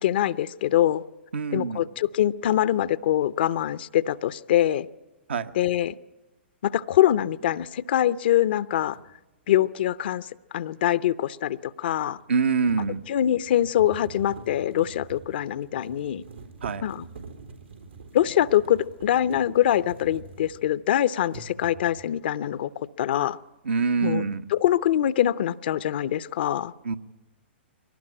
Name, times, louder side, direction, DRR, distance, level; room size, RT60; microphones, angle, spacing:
voice 1, 0.0-1.0 1.5-4.9 5.5-6.0 6.6-9.0 9.5-10.3 10.5-12.2 13.1-16.2 16.8-17.1 18.1-23.4 24.0-24.2 24.5-26.7, left 12 dB, 60° left, 17 dB, 0.7 m, -24 dB
voice 2, 1.3-1.8 5.3-5.5 12.3-13.0 16.6-16.8 23.6-24.4 26.8-26.9, right 5 dB, 70° right, 7 dB, 1.2 m, -25 dB
sound 1, 8.9-9.1 12.1-20.9 21.3-22.1, right 4 dB, 90° right, 4.0 m, -45 dB
23.0 x 18.5 x 9.9 m, 1.1 s
hypercardioid pair, 115°, 6 cm